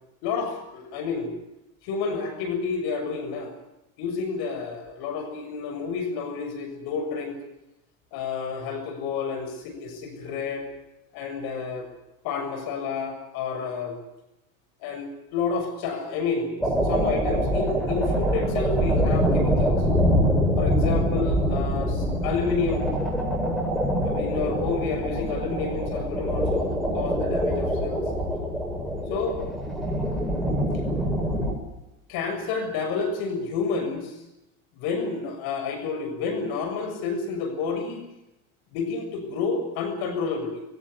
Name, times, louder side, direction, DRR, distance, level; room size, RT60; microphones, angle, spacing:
voice 1, 0.2-1.3 1.8-3.5 4.0-7.4 8.1-10.7 11.1-11.9 12.2-14.0 14.8-16.5 16.8-19.9 20.6-22.9 24.0-26.7 26.9-28.0 29.1-29.4 32.1-34.2 34.7-38.0 38.7-40.6, left 5 dB, 55° left, 7 dB, 7.0 m, -30 dB
sound 1, 16.6-31.5, equal, ahead, 7.7 m, -24 dB
21.5 x 17.5 x 9.5 m, 0.92 s
supercardioid pair, 110°, 43 cm